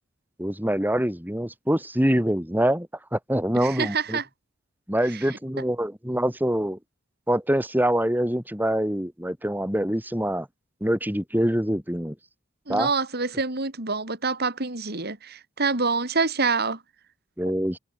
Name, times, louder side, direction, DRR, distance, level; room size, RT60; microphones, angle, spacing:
voice 1, 0.4-4.2 4.9-6.8 7.3-10.5 10.8-12.1 12.7-12.9 17.4-17.8, equal, 10° right, 4.0 m, -25 dB
voice 2, 3.6-4.3 5.1-5.2 12.7-16.8 17.5-17.6, right 4 dB, 55° right, 3.7 m, -26 dB
head